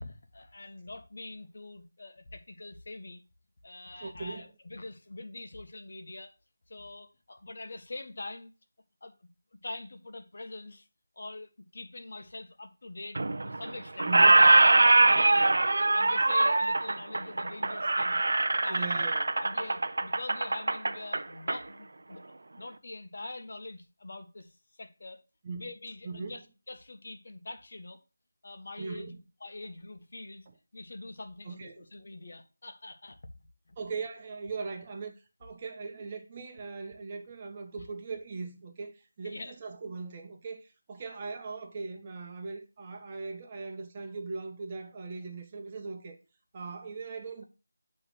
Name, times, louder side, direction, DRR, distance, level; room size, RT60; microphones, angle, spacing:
voice 1, 0.0-3.2 3.6-6.3 6.7-8.5 9.0-9.1 9.5-10.9 11.2-14.1 14.8-15.5 15.8-18.2 18.6-19.0 19.4-22.2 22.6-25.2 25.5-28.0 28.4-29.1 29.4-30.5 30.7-33.2 33.7-33.8 39.2-39.5, left 2 dB, 55° left, 1.3 m, -44 dB
voice 2, 4.0-4.5 14.1-14.4 15.1-15.6 18.7-19.4 25.4-25.7 26.0-26.4 28.8-29.2 31.4-31.9 33.8-46.2 46.5-47.4, right 4 dB, 25° right, 1.0 m, -40 dB
Squeak, 13.1-13.7 14.0-21.6, right 2 dB, 65° right, 0.6 m, -23 dB
8.8 x 3.3 x 6.1 m
figure-of-eight pair, 170°, 0 cm